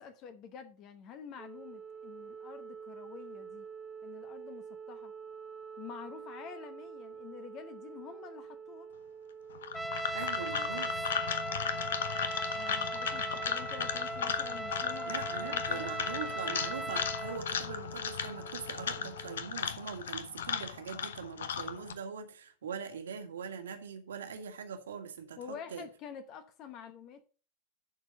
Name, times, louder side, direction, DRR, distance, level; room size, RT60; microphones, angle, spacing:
voice 1, 0.0-3.7 4.0-5.1 5.8-8.9 12.5-15.1 15.4-16.0 25.4-27.2, left 7 dB, 35° left, 1.0 m, -48 dB
sound 1, 1.4-19.4, right 6 dB, 25° right, 1.6 m, -48 dB
sound 2, 9.5-21.9, left 8 dB, 65° left, 0.9 m, -36 dB
Trumpet, 9.7-17.4, right 2 dB, ahead, 0.3 m, -38 dB
voice 2, 10.1-11.0 15.1-25.8, right 6 dB, 65° right, 1.8 m, -42 dB
11.0 x 4.5 x 6.5 m
figure-of-eight pair, 90°, 0 cm